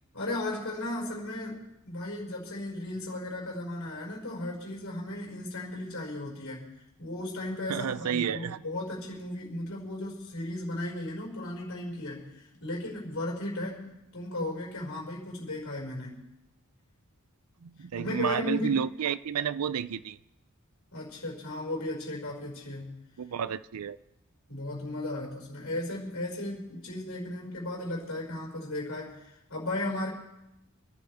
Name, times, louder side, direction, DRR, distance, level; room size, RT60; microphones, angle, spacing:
voice 1, 0.1-6.7 7.0-16.2 18.0-18.7 20.9-23.0 24.5-30.1, left 1 dB, 70° left, -3 dB, 5.5 m, -35 dB
voice 2, 7.7-8.6 17.6-20.2 23.2-24.0, right 7 dB, 90° right, 15 dB, 0.5 m, -31 dB
29.5 x 11.5 x 3.5 m, 0.90 s
head